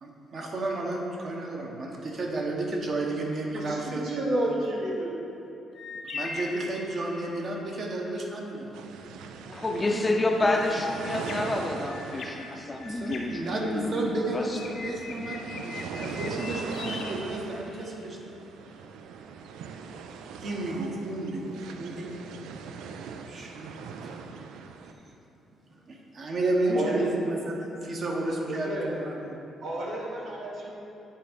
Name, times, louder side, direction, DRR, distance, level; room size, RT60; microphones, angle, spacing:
voice 1, 0.0-4.2 6.1-8.7 9.6-10.1 10.6-10.7 11.1-11.3 12.8-18.4 20.4-22.1 23.3-24.1 24.9-25.0 25.7-29.3, right 2 dB, 50° right, 1.2 m, -32 dB
voice 2, 3.5-5.1 26.7-27.1 28.4-29.0 29.6-30.7, right 1 dB, 75° right, 1.6 m, -31 dB
sound 1, 5.7-7.5 10.9-14.1 14.5-18.0, left 3 dB, 65° left, 0.8 m, -41 dB
sound 2, 8.7-24.9, right 6 dB, 90° right, 0.4 m, -41 dB
voice 3, 9.4-14.1 14.3-14.4 14.8-14.9, left 2 dB, 25° left, 0.6 m, -28 dB
8.7 x 3.6 x 5.1 m
cardioid pair, 90°, 0 cm